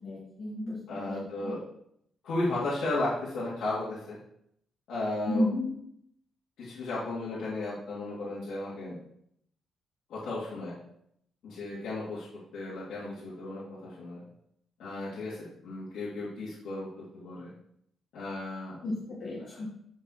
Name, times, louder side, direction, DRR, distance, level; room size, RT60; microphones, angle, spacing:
voice 1, 0.0-0.8 1.0-1.5 5.3-5.7 18.8-19.7, left 1 dB, 45° left, -7 dB, 2.1 m, -32 dB
voice 2, 0.9-1.6 2.2-4.2 4.9-5.5 6.6-9.0 10.1-10.7 11.4-12.3 12.5-14.2 14.8-16.9 17.1-17.5 18.1-18.8 19.4-19.8, left 2 dB, 70° left, -9 dB, 3.1 m, -34 dB
11.5 x 5.1 x 4.3 m, 0.71 s
cardioid pair, 160°, 0 cm